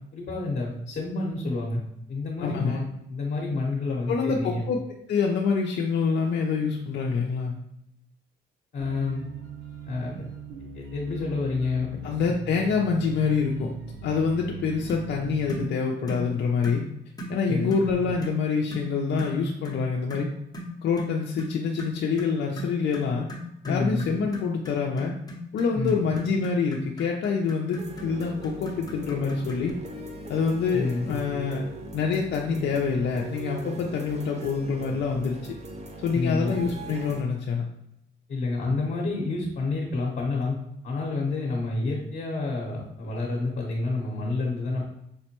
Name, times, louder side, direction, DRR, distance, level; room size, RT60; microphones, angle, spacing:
voice 1, 0.1-1.8 2.1-4.6 8.7-9.2 9.9-10.2 10.7-11.9 17.5-17.7 23.6-24.0 25.8-26.0 30.7-31.1 36.1-36.5 38.3-40.5 40.8-44.8, left 3 dB, 45° left, -4 dB, 0.9 m, -29 dB
voice 2, 2.4-2.8 4.1-4.8 5.1-7.6 12.0-13.7 14.0-16.9 17.3-20.3 20.8-23.3 23.7-25.1 25.5-29.7 30.3-31.6 31.9-35.5 36.0-37.6, left 5 dB, 60° left, 0 dB, 0.5 m, -26 dB
sound 1, 8.8-15.6, right 4 dB, 75° right, 0.7 m, -40 dB
sound 2, 14.9-15.1 15.5-15.7 16.1-16.3 16.6-16.8 17.2-17.4 17.7-17.9 18.2-18.4 18.7-18.9 19.2-19.4 19.6-19.8 20.1-29.7, left 1 dB, 20° left, 0.8 m, -38 dB
sound 3, 27.8-37.2, right 2 dB, 35° right, 0.6 m, -40 dB
5.1 x 2.1 x 2.9 m, 0.79 s
cardioid pair, 90°, 20 cm